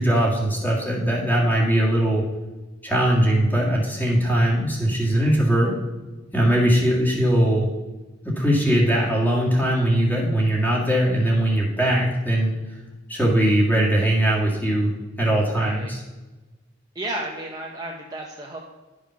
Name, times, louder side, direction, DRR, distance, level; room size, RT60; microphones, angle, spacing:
voice 1, 0.0-2.2 2.8-5.7 6.3-7.7 8.2-12.5 13.1-14.9 15.2-16.0, right 1 dB, 10° left, -3 dB, 1.9 m, -20 dB
voice 2, 15.5-15.9 16.9-18.6, right 1 dB, 20° right, -2 dB, 0.8 m, -33 dB
11.0 x 5.0 x 5.7 m, 1.2 s
head